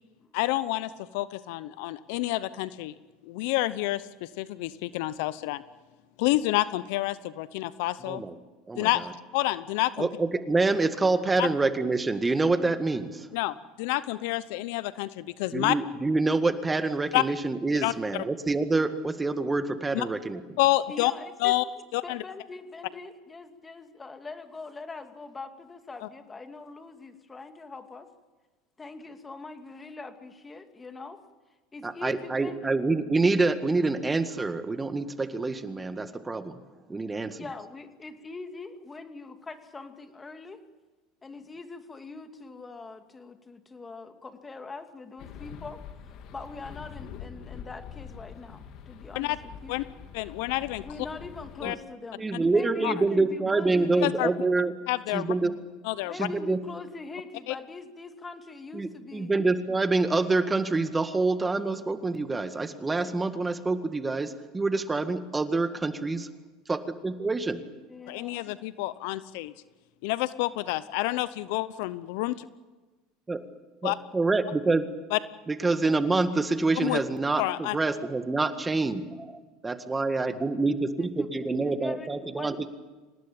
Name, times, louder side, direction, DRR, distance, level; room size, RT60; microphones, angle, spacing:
voice 1, 0.3-2.9 3.2-5.6 6.2-8.2 8.8-9.1 9.3-10.1 11.4-11.5 13.3-15.8 17.1-17.2 17.8-18.2 19.9-20.0 20.6-21.1 21.4-21.6 21.9-22.2 49.2-49.4 49.7-49.8 50.1-50.8 51.6-51.7 52.8-52.9 54.0-54.3 54.9-55.3 55.8-56.3 57.5-57.6 68.1-69.5 70.0-72.5 73.8-74.0 75.1-75.2 76.8-77.0 77.4-77.8, left 18 dB, 70° left, 16 dB, 0.8 m, -28 dB
voice 2, 8.1-8.4 8.7-9.1 10.0-13.3 15.5-20.6 31.8-36.6 36.9-37.4 51.6-51.7 52.2-54.7 55.1-55.5 56.1-56.6 58.7-66.3 66.7-67.6 73.3-73.4 73.8-74.9 75.5-82.7, right 3 dB, 15° right, 9 dB, 1.8 m, -27 dB
voice 3, 20.9-28.1 28.8-31.2 31.7-32.7 37.4-40.6 41.2-45.8 46.3-49.8 50.8-54.3 56.0-59.3 67.7-68.6 81.0-81.3 81.6-82.1 82.3-82.7, left 3 dB, 20° left, 7 dB, 2.5 m, -42 dB
sound 1, 45.2-51.7, left 8 dB, 55° left, 2.3 m, -45 dB
26.0 x 19.0 x 8.9 m, 1.3 s
hypercardioid pair, 95°, 0 cm